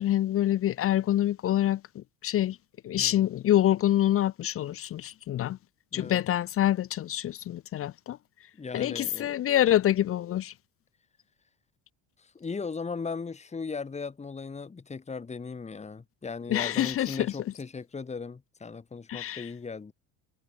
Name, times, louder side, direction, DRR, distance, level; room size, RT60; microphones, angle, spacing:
voice 1, 0.0-2.6 2.8-5.6 5.9-8.2 8.7-10.5 16.5-17.3 19.1-19.5, left 12 dB, 30° left, 0.5 m, -26 dB
voice 2, 3.0-3.3 5.9-6.2 8.6-9.3 12.2-19.9, left 4 dB, 15° left, 2.4 m, -37 dB
cardioid pair, 150°, 43 cm